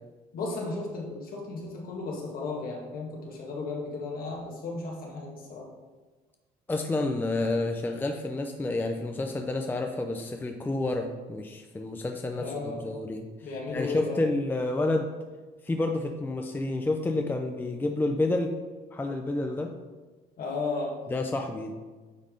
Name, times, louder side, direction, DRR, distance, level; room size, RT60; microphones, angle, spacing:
voice 1, 0.3-5.7 12.4-12.9 13.4-14.2 20.4-21.0, left 3 dB, 60° left, -1 dB, 1.8 m, -34 dB
voice 2, 6.7-13.3 13.7-15.1 15.6-18.5 18.9-19.7 21.1-21.7, left 2 dB, 10° left, 4 dB, 0.5 m, -29 dB
9.1 x 3.5 x 3.8 m, 1.3 s
cardioid pair, 110°, 17 cm